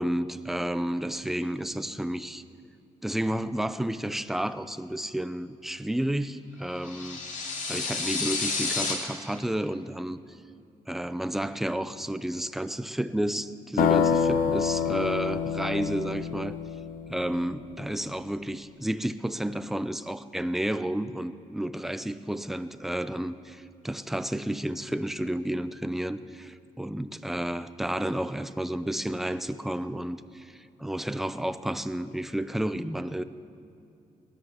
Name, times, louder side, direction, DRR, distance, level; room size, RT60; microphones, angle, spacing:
voice 1, 0.0-2.4 3.0-7.2 7.7-10.2 10.9-16.6 17.1-33.2, right 1 dB, ahead, 12 dB, 0.4 m, -31 dB
sound 1, 6.8-8.9, left 4 dB, 70° left, 2.4 m, -30 dB
sound 2, 13.8-17.6, left 7 dB, 85° left, 0.9 m, -27 dB
19.0 x 10.5 x 7.0 m, 2.7 s
cardioid pair, 160°, 14 cm